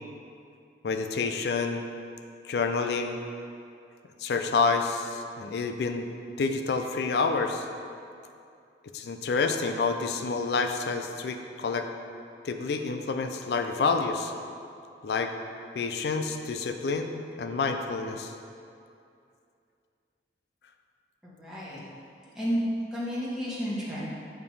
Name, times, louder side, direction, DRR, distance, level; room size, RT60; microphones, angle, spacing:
voice 1, 0.8-1.8 2.4-3.2 4.2-6.1 6.4-7.7 8.9-11.9 12.4-14.3 15.0-15.3 15.8-18.3, left 4 dB, 70° left, 6 dB, 0.4 m, -28 dB
voice 2, 21.2-21.8 22.3-22.6 22.9-24.0, equal, 5° right, -9 dB, 1.2 m, -31 dB
6.8 x 2.8 x 5.4 m, 2.5 s
head